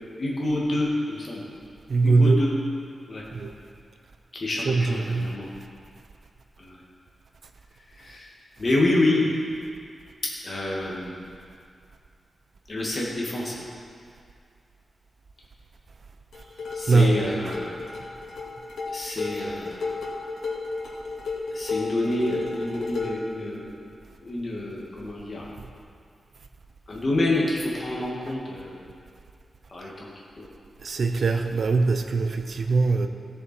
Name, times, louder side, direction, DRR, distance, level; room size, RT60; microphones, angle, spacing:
voice 1, 0.0-1.4 2.0-2.5 3.1-3.2 4.3-5.5 6.6-6.8 8.0-8.3 8.6-9.3 10.4-11.2 12.7-13.5 16.7-17.9 18.9-19.8 21.5-23.7 24.2-25.5 26.9-28.8 29.7-30.1 30.4-30.5, left 2 dB, 35° left, -4 dB, 2.2 m, -27 dB
voice 2, 1.9-2.5 3.3-3.5 4.6-5.3 16.9-17.6 28.3-28.4 30.8-33.1, right 3 dB, 50° right, 6 dB, 0.7 m, -22 dB
sound 1, 16.3-23.3, left 3 dB, 85° left, 2.3 m, -33 dB
16.5 x 7.0 x 4.6 m, 2.3 s
wide cardioid pair, 170°, 0 cm